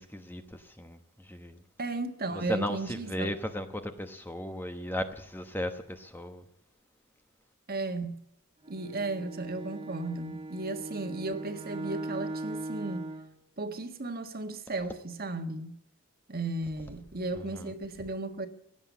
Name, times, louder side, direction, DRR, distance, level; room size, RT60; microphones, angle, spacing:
voice 1, 0.0-1.5 2.3-6.4 17.5-17.7, left 1 dB, 10° left, 1.0 m, -36 dB
voice 2, 1.8-3.4 7.7-8.2 8.7-13.1 13.6-15.7 16.3-18.5, right 2 dB, 45° right, 1.5 m, -35 dB
Bowed string instrument, 8.6-13.4, right 2 dB, 25° right, 1.9 m, -39 dB
16.5 x 10.0 x 8.4 m
head